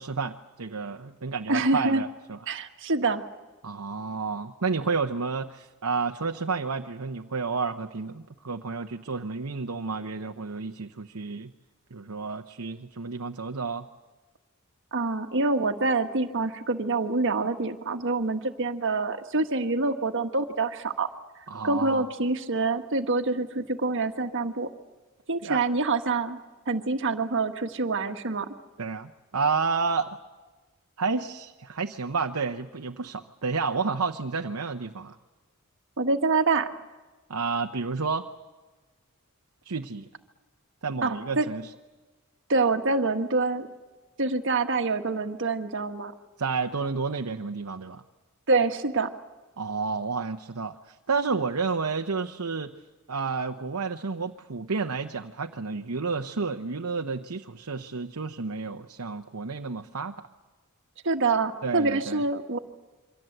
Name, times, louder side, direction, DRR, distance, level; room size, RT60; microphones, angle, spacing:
voice 1, 0.0-2.4 3.6-11.5 11.9-13.9 21.5-22.1 25.4-25.6 28.8-30.2 31.0-35.2 37.3-38.3 39.6-40.1 40.8-41.7 46.4-48.0 49.6-52.7 53.1-60.3 61.6-62.2, right 4 dB, 80° right, 4 dB, 0.9 m, -30 dB
voice 2, 1.5-2.0 2.5-3.2 14.9-21.1 21.6-24.7 25.3-26.4 26.7-28.5 36.0-36.7 41.0-41.5 42.5-43.7 44.2-46.1 48.5-49.1 61.0-62.6, right 3 dB, 60° right, 7 dB, 1.5 m, -26 dB
27.5 x 24.5 x 7.9 m, 1.3 s
head